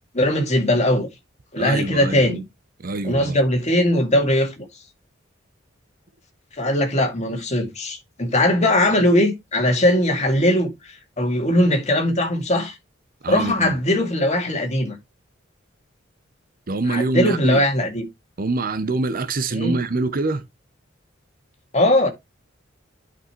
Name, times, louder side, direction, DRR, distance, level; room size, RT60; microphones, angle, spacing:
voice 1, 0.1-1.1 1.5-2.4 3.0-4.7 6.6-12.7 13.3-15.0 16.9-18.0 19.5-19.7 21.7-22.1, left 1 dB, 35° left, 2.3 m, -20 dB
voice 2, 1.6-2.2 2.8-3.4 13.2-13.8 16.7-17.6 18.4-20.4, right 3 dB, 45° right, 0.7 m, -25 dB
11.0 x 5.3 x 3.0 m
head